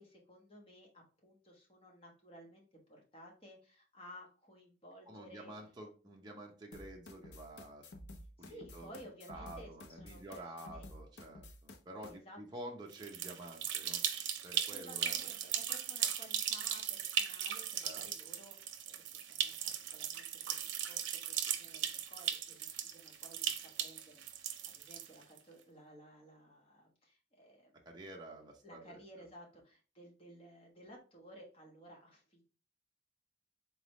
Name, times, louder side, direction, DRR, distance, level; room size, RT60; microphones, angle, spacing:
voice 1, 0.0-5.5 8.4-10.9 12.1-12.4 14.7-27.7 28.6-32.4, equal, 30° left, 0 dB, 1.2 m, -56 dB
voice 2, 5.1-7.9 8.4-8.9 9.3-14.0 14.4-15.5 17.8-18.1 27.9-29.0, right 1 dB, 25° right, 0 dB, 0.8 m, -49 dB
sound 1, 6.7-12.1, left 1 dB, 65° left, 0.6 m, -52 dB
sound 2, 12.9-25.4, right 9 dB, 85° right, 0.6 m, -38 dB
3.9 x 3.6 x 3.0 m, 0.37 s
head